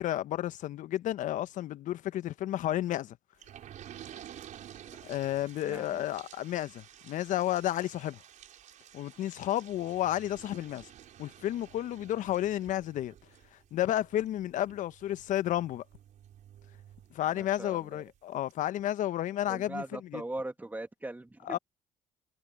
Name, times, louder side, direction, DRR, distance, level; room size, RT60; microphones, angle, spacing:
voice 1, 0.0-3.2 5.0-8.2 8.9-10.9 11.2-13.1 13.7-15.8 17.1-19.8 20.1-20.2 21.5-21.6, left 13 dB, 65° left, 1.3 m, -32 dB
sound 1, 3.4-17.7 18.1-18.2 18.5-18.6, right 11 dB, 60° right, 4.5 m, -52 dB
voice 2, 5.6-6.1 17.3-18.1 19.5-21.6, right 2 dB, 10° right, 2.8 m, -40 dB
hypercardioid pair, 60°, 14 cm